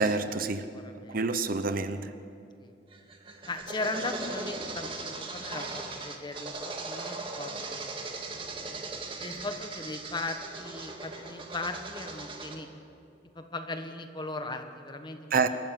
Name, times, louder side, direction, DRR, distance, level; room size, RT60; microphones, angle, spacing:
voice 1, 0.0-0.7 1.1-2.1 15.3-15.5, right 4 dB, 55° right, 11 dB, 0.9 m, -27 dB
voice 2, 0.7-1.2 2.6-2.7 3.5-8.5 9.2-12.7 13.3-15.5, left 2 dB, 25° left, 6 dB, 1.4 m, -38 dB
sound 1, 2.9-12.6, right 3 dB, 30° right, 2.0 m, -39 dB
28.0 x 13.5 x 7.7 m, 2.5 s
head